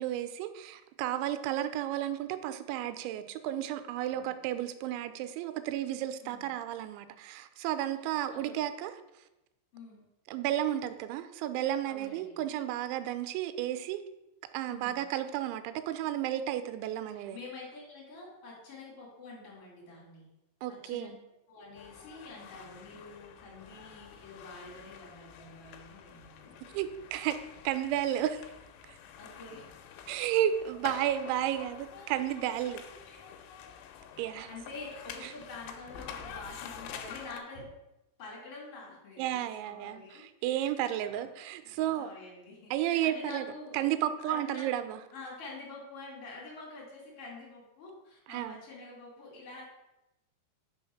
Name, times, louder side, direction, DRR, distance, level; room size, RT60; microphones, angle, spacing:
voice 1, 0.0-9.0 10.3-14.0 14.5-17.4 20.6-21.2 26.7-27.4 27.6-28.5 28.9-29.0 30.1-32.8 34.2-34.5 35.2-35.3 39.2-42.1 42.7-43.5 43.7-45.0 48.3-48.6, right 12 dB, 85° right, 11 dB, 2.8 m, -32 dB
voice 2, 8.3-8.6 9.7-10.0 11.8-12.4 14.7-15.1 17.1-20.3 20.7-21.1 21.5-26.5 29.2-29.7 30.7-30.8 32.0-32.1 33.1-33.4 34.5-37.7 38.2-40.2 40.5-40.6 41.0-41.3 41.6-43.8 44.2-44.7 45.1-49.6, left 3 dB, 35° left, -5 dB, 2.8 m, -47 dB
sound 1, 21.8-37.4, left 8 dB, 85° left, 3.0 m, -48 dB
6.1 x 4.4 x 5.7 m, 0.94 s
omnidirectional pair, 5.4 m